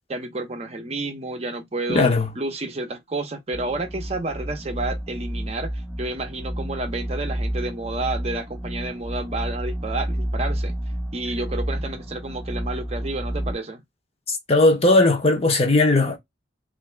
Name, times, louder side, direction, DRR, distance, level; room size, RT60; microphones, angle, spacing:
voice 1, 0.1-2.1 2.4-10.8 11.1-13.8, right 2 dB, 35° right, 0.6 m, -30 dB
voice 2, 1.9-2.3 14.3-16.2, left 2 dB, 35° left, 0.8 m, -18 dB
sound 1, 3.5-13.5, equal, 5° left, 0.5 m, -30 dB
3.4 x 2.5 x 3.2 m
head